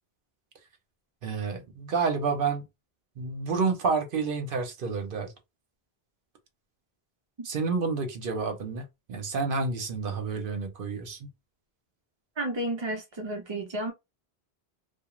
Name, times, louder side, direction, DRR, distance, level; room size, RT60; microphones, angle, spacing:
voice 1, 1.2-2.6 3.2-5.3 7.4-11.3, right 4 dB, 60° right, 0.8 m, -29 dB
voice 2, 12.4-13.9, right 1 dB, 45° right, 0.4 m, -32 dB
2.3 x 2.3 x 2.9 m
omnidirectional pair, 1.1 m